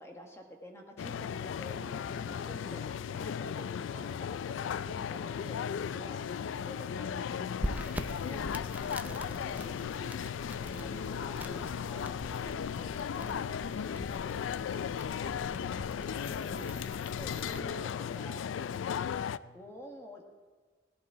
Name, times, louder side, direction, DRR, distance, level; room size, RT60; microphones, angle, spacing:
voice 1, 0.0-6.2 6.6-10.1 10.7-14.2 15.9-18.4 19.5-20.2, equal, 15° left, 2 dB, 1.4 m, -49 dB
sound 1, 1.0-19.4, left 8 dB, 80° left, 0.3 m, -36 dB
voice 2, 6.4-6.9 19.4-19.6, right 1 dB, 55° right, 1 dB, 1.0 m, -59 dB
sound 2, 7.6-17.6, right 1 dB, 10° right, 0.5 m, -43 dB
16.5 x 11.0 x 4.7 m, 1.4 s
head